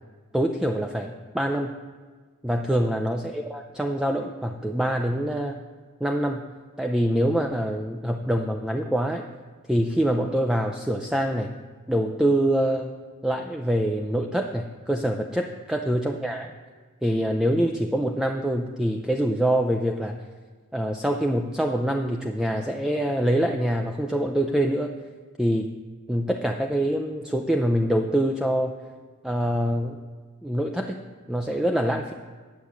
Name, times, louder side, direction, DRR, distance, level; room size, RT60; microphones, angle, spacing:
voice 1, 0.3-1.7 2.4-5.6 6.0-6.4 6.8-9.2 9.7-11.5 11.9-12.9 13.2-16.5 17.0-20.2 20.7-24.9 25.4-25.7 26.1-28.7 29.2-30.0 30.4-31.0 31.3-32.1, right 1 dB, 5° right, 4 dB, 0.4 m, -25 dB
8.9 x 6.3 x 8.3 m, 1.5 s
head